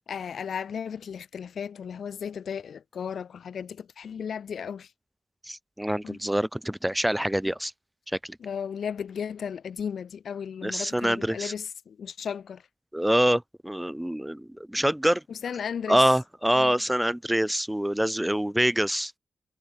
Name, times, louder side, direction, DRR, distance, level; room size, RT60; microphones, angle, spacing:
voice 1, 0.1-4.9 6.0-6.2 8.4-12.6 15.3-16.0 16.5-16.7, left 7 dB, 75° left, 2.3 m, -35 dB
voice 2, 5.5-7.7 8.2-8.4 10.6-11.5 12.9-15.2 15.9-19.1, right 1 dB, 5° right, 1.5 m, -25 dB
cardioid pair, 90°, 0 cm